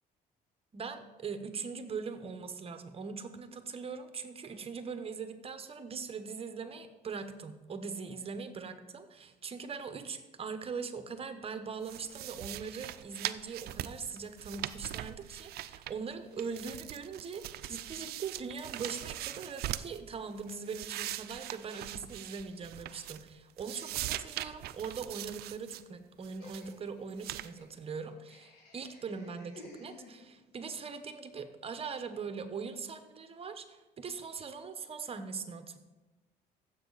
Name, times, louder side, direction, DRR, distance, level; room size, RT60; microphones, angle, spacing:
voice 1, 0.7-35.8, right 5 dB, 35° right, 9 dB, 1.0 m, -41 dB
sound 1, 11.8-16.1 16.4-20.0 20.4-23.3 23.6-25.8 26.2-26.7 27.2-27.5, right 14 dB, 70° right, 0.5 m, -41 dB
Laughter, 26.4-30.6, left 2 dB, 80° left, 2.8 m, -54 dB
15.0 x 7.6 x 4.0 m, 1.1 s
cardioid pair, 110°, 17 cm